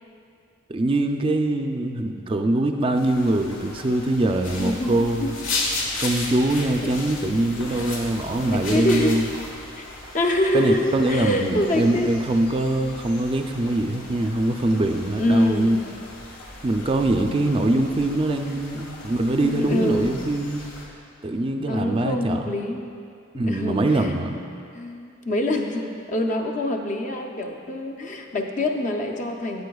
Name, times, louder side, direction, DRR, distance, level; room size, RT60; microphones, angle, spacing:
voice 1, 0.7-5.4 6.0-9.3 10.5-15.8 16.6-20.7 21.2-22.5 23.3-24.4, right 1 dB, 25° right, 5 dB, 0.4 m, -23 dB
sound 1, 2.9-20.9, left 1 dB, 70° left, 1.6 m, -42 dB
sound 2, 4.4-9.5, left 3 dB, 85° left, 1.3 m, -31 dB
voice 2, 4.6-5.7 6.8-6.9 8.4-9.2 9.8-9.9 10.1-12.1 15.2-15.7 17.6-17.8 18.5-18.7 19.4-20.2 21.7-22.9 23.3-24.4 24.7-29.6, left 1 dB, 40° left, 3 dB, 0.5 m, -25 dB
13.0 x 8.3 x 2.3 m, 2.4 s
head